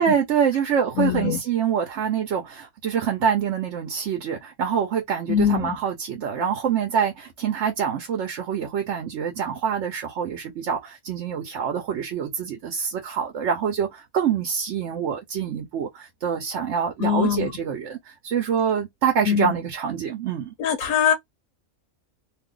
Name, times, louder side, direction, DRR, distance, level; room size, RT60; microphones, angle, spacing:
voice 1, 0.0-20.5, right 7 dB, 65° right, 0.9 m, -25 dB
voice 2, 1.0-1.4 5.3-5.8 17.0-17.5 19.3-19.6 20.6-21.1, left 9 dB, 75° left, 1.0 m, -22 dB
2.6 x 2.4 x 3.6 m
omnidirectional pair, 1.5 m